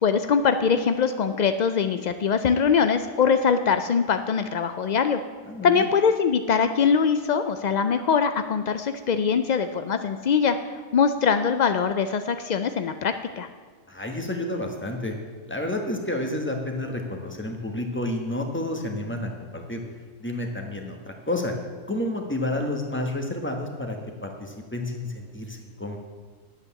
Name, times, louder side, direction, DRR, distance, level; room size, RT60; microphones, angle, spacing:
voice 1, 0.0-5.2 5.6-10.6 10.9-13.5, left 6 dB, 75° left, 9 dB, 0.4 m, -22 dB
voice 2, 5.5-5.9 13.9-15.1 15.5-19.8 20.2-21.5 21.9-26.0, left 1 dB, 10° left, 2 dB, 1.3 m, -30 dB
10.0 x 8.1 x 7.0 m, 1.5 s
omnidirectional pair, 1.3 m